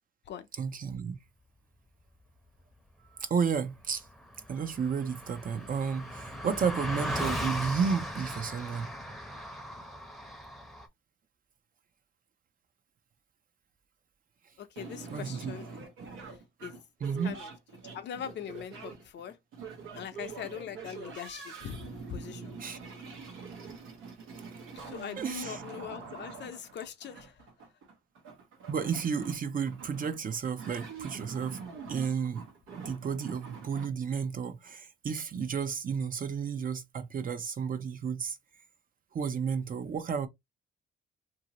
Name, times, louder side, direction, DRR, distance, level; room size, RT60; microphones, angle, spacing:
voice 1, 0.6-1.2 3.2-4.1 4.5-8.9 15.1-15.5 17.0-17.3 22.6-22.8 25.2-25.6 28.7-31.6 31.9-32.5 32.8-38.4 39.1-40.3, right 6 dB, 45° right, 0.6 m, -32 dB
Car passing by, 3.8-3.9 4.0-10.9, equal, ahead, 0.7 m, -38 dB
voice 2, 14.6-15.9 16.3-16.8 17.2-17.5 17.9-19.4 19.9-22.5 24.7-27.5, left 8 dB, 65° left, 0.6 m, -42 dB
sound 1, 14.8-33.9, right 5 dB, 85° right, 1.0 m, -45 dB
2.9 x 2.7 x 2.9 m
cardioid pair, 90°, 20 cm